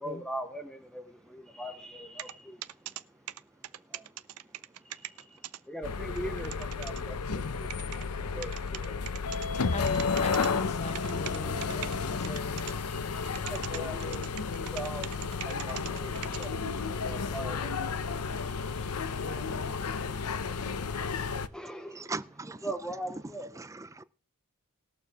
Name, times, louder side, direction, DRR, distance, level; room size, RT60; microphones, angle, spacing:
voice 1, 0.0-2.6 3.9-4.1 4.8-9.0 12.9-15.1 15.4-16.6 17.0-19.4 21.5-22.2 22.6-23.5, right 1 dB, 5° left, 0.9 m, -41 dB
sound 1, 2.2-2.3 2.6-3.0 3.3-5.6 5.9-6.0 6.2-7.0 7.7-8.0 8.4-9.5 9.9-10.5 10.9-12.0 12.2-12.7 13.1-16.5, right 12 dB, 80° right, 0.6 m, -40 dB
sound 2, 5.8-21.5, left 5 dB, 90° left, 0.7 m, -32 dB
voice 2, 9.7-12.7 19.2-19.8, left 2 dB, 30° left, 0.8 m, -41 dB
voice 3, 21.9-22.7 23.5-24.0, right 3 dB, 15° right, 0.5 m, -39 dB
20.0 x 6.9 x 3.5 m
head